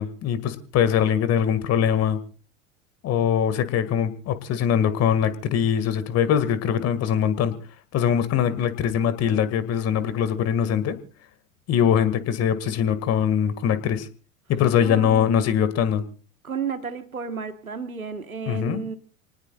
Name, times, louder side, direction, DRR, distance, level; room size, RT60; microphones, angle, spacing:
voice 1, 0.0-2.2 3.0-7.5 7.9-11.0 11.7-14.1 14.5-16.0 18.5-18.8, left 8 dB, 40° left, 2.0 m, -22 dB
voice 2, 14.8-15.5 16.4-19.0, right 5 dB, 90° right, 1.6 m, -32 dB
28.5 x 19.0 x 2.4 m
figure-of-eight pair, 85°, 41 cm